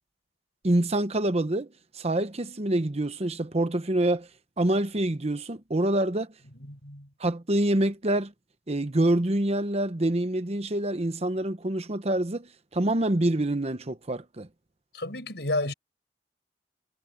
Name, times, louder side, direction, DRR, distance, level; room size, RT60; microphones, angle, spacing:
voice 1, 0.6-1.7 2.0-4.3 4.6-6.3 7.2-8.3 8.7-14.5, right 1 dB, 40° right, 1.0 m, -26 dB
voice 2, 6.7-7.1 14.9-15.7, left 2 dB, 70° left, 7.7 m, -31 dB
head